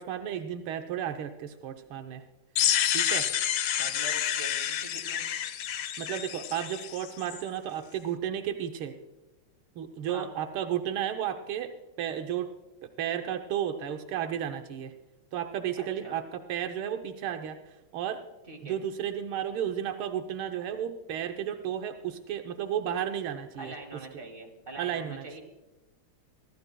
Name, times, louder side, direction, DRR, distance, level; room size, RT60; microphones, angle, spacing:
voice 1, 0.0-2.2 2.9-3.3 6.0-8.9 9.8-11.7 12.0-12.5 12.8-14.9 15.3-17.6 17.9-18.2 18.6-23.7 24.1-24.2 24.8-25.2, right 9 dB, 80° right, 6 dB, 1.6 m, -33 dB
sound 1, 2.6-7.4, left 10 dB, 75° left, 0.9 m, -29 dB
voice 2, 3.8-5.2 10.1-10.3 15.8-16.2 18.5-18.8 23.6-25.4, right 2 dB, 25° right, 1 dB, 2.5 m, -44 dB
23.5 x 13.5 x 2.2 m, 1.1 s
omnidirectional pair, 2.3 m